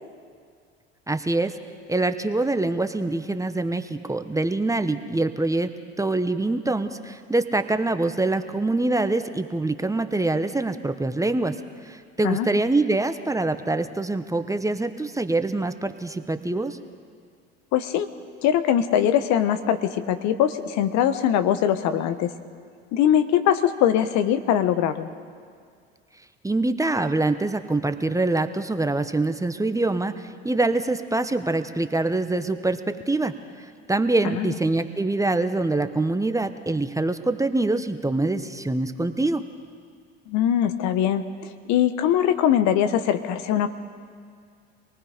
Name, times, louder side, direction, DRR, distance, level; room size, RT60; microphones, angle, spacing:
voice 1, 1.1-1.5 1.9-5.7 6.0-11.5 11.8-16.8 26.4-39.4, right 2 dB, 10° right, 9 dB, 1.1 m, -24 dB
voice 2, 17.7-18.1 18.4-22.3 22.9-25.1 34.3-34.5 40.3-41.2 41.7-43.7, left 10 dB, 65° left, 10 dB, 1.2 m, -21 dB
26.5 x 19.0 x 5.1 m, 2.1 s
hypercardioid pair, 70°, 31 cm